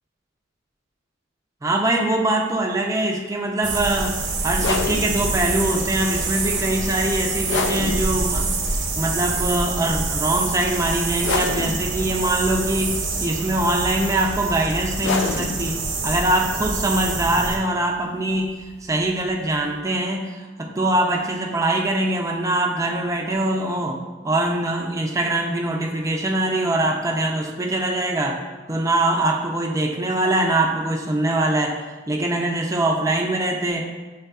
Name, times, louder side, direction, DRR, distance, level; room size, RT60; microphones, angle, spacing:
voice 1, 1.6-8.6 8.9-18.5 18.8-24.0 24.2-28.4 28.7-31.8 32.1-33.8, right 1 dB, 15° right, 1 dB, 0.4 m, -23 dB
sound 1, 3.6-17.6, right 3 dB, 65° right, 0.9 m, -26 dB
sound 2, 4.5-19.8, left 5 dB, 65° left, 0.3 m, -32 dB
6.6 x 3.3 x 2.3 m, 1.3 s
head